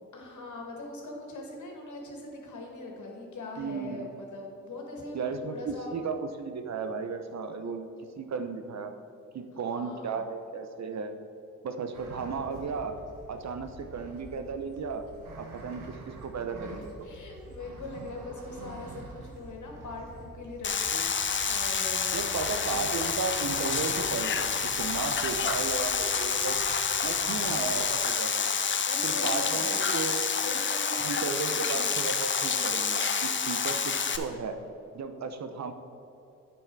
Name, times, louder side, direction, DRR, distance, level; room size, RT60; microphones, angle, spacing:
voice 1, 0.1-6.0 9.7-10.2 16.6-21.1 21.4-22.3 22.7-22.9 28.8-30.0 30.3-32.0, left 2 dB, 65° left, 1 dB, 2.0 m, -41 dB
voice 2, 3.6-4.1 5.1-7.9 8.2-8.9 9.3-11.1 11.6-13.0 13.3-15.0 15.4-17.1 22.1-24.5 24.8-26.6 27.0-28.5 29.0-30.2 31.0-34.6 34.9-35.7, right 5 dB, 55° right, 8 dB, 0.9 m, -34 dB
sound 1, 11.9-27.9, right 2 dB, 80° right, 1.4 m, -47 dB
sound 2, 20.6-34.2, left 6 dB, 35° left, 0.8 m, -28 dB
8.9 x 6.2 x 4.7 m, 2.9 s
supercardioid pair, 45°, 32 cm